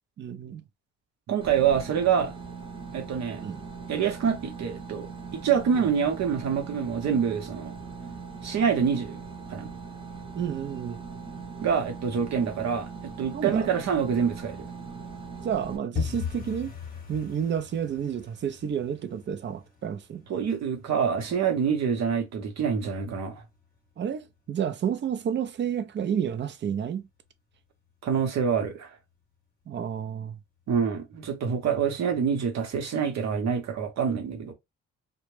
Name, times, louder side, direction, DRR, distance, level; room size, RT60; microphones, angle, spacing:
voice 1, 0.2-0.6 3.4-3.6 5.7-5.9 10.3-11.0 13.3-13.7 15.4-16.7 17.1-20.2 24.0-27.0 29.7-30.4, right 8 dB, 40° right, 0.4 m, -30 dB
voice 2, 1.3-2.3 2.9-3.4 3.9-5.1 5.3-7.7 8.4-9.2 9.5-9.7 11.6-14.7 20.3-23.4 28.0-29.0 30.7-34.5, right 7 dB, 60° right, 0.7 m, -26 dB
sound 1, 1.4-15.8, right 5 dB, 15° right, 0.7 m, -40 dB
sound 2, 15.9-26.7 26.9-27.6 27.9-28.2 28.4-28.8 29.1-29.2 29.7-30.3 30.6-30.7 31.2-31.3, left 7 dB, 30° left, 0.8 m, -41 dB
2.1 x 2.0 x 3.0 m
cardioid pair, 90°, 30 cm